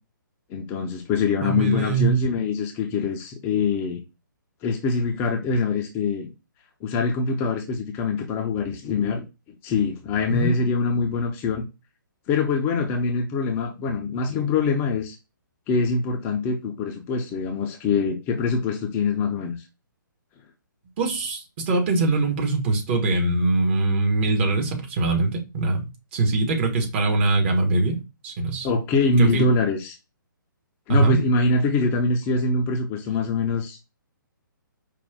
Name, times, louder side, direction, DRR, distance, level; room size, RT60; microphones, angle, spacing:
voice 1, 0.5-4.0 4.6-6.3 6.8-9.3 9.6-11.6 12.3-15.2 15.7-19.6 28.6-30.0 30.9-33.8, left 4 dB, 20° left, 0.7 m, -24 dB
voice 2, 1.4-2.2 10.3-10.5 21.0-28.0 28.2-28.7 29.2-29.5 30.9-31.2, right 3 dB, 35° right, 1.4 m, -22 dB
5.2 x 2.5 x 3.5 m
figure-of-eight pair, 135°, 11 cm